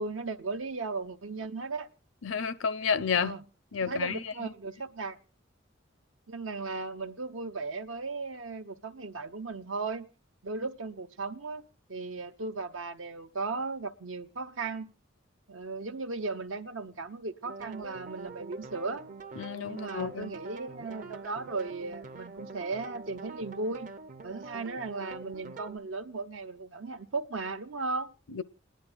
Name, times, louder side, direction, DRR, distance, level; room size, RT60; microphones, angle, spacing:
voice 1, 0.0-1.9 3.1-3.4 3.8-5.2 6.3-10.1 10.4-11.6 11.9-14.9 15.5-19.0 19.6-23.9 24.2-28.1, right 3 dB, 75° right, 1.0 m, -36 dB
voice 2, 2.2-3.3 3.7-4.2 19.4-20.3 28.3-28.4, left 6 dB, 75° left, 0.6 m, -30 dB
sound 1, 17.4-25.8, right 4 dB, 40° right, 0.7 m, -45 dB
30.0 x 10.0 x 2.3 m
head